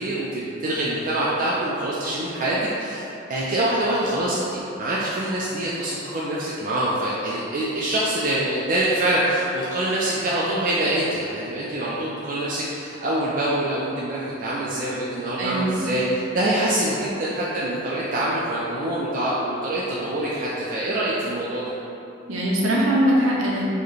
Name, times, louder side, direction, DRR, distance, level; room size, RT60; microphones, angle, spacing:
voice 1, 0.0-16.0 16.3-21.7, right 1 dB, 40° right, -7 dB, 0.3 m, -25 dB
voice 2, 15.4-16.0 22.3-23.6, equal, 85° right, -4 dB, 0.7 m, -21 dB
4.6 x 2.1 x 3.1 m, 2.9 s
head